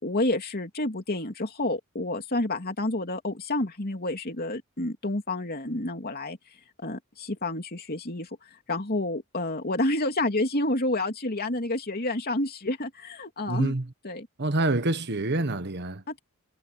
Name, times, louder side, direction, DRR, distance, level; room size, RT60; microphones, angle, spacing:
voice 1, 0.0-6.4 6.8-8.3 8.7-13.7 14.0-14.3 16.1-16.2, left 2 dB, 45° left, 3.0 m, -29 dB
voice 2, 13.5-13.9 14.4-16.0, right 2 dB, 50° right, 1.4 m, -26 dB
head